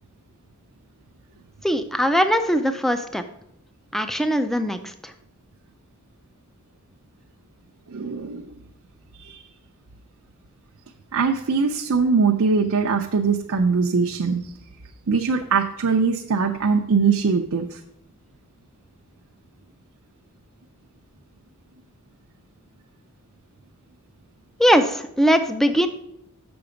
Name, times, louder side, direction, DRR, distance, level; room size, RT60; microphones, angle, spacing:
voice 1, 1.6-3.2 3.9-4.9 24.6-25.9, equal, ahead, 9 dB, 0.4 m, -20 dB
voice 2, 7.9-8.5 9.2-9.4 11.1-14.5 15.1-17.8, right 5 dB, 75° right, 2 dB, 0.5 m, -21 dB
7.0 x 5.8 x 5.0 m, 0.79 s
head